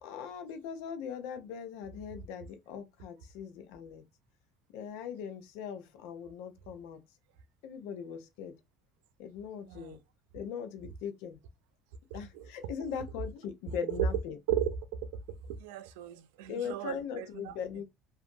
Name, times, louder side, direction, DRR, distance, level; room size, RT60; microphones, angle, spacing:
voice 1, 0.0-4.0 4.7-7.0 7.6-8.5 9.2-10.0 10.3-11.4 12.1-14.4 16.5-17.8, left 7 dB, 80° left, 0.5 m, -40 dB
voice 2, 15.5-17.5, right 12 dB, 90° right, 0.3 m, -34 dB
2.6 x 2.5 x 2.5 m
supercardioid pair, 95°, 0 cm